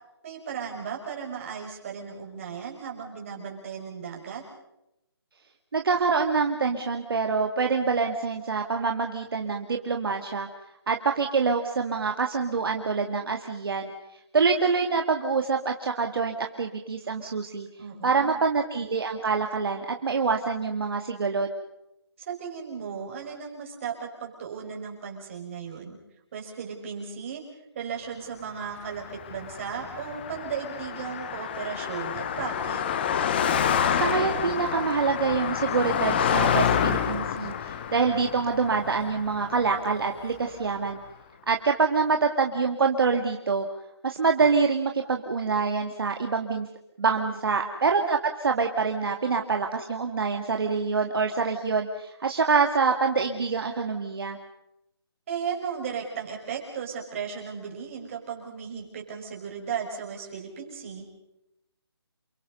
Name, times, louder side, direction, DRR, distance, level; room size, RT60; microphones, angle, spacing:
voice 1, 0.2-4.4 17.8-18.4 22.2-26.0 26.3-27.4 27.7-32.8 47.3-47.9 55.3-61.0, right 7 dB, 30° right, 0 dB, 5.9 m, -36 dB
voice 2, 5.7-10.5 10.9-13.9 14.3-17.7 18.0-21.5 33.9-41.0 41.5-43.7 44.0-46.7 47.0-54.4, right 5 dB, 60° right, 3 dB, 2.2 m, -26 dB
Car passing by, 28.8-40.4, left 8 dB, 25° left, 1.1 m, -28 dB
29.0 x 23.0 x 5.4 m, 0.86 s
hypercardioid pair, 165°, 14 cm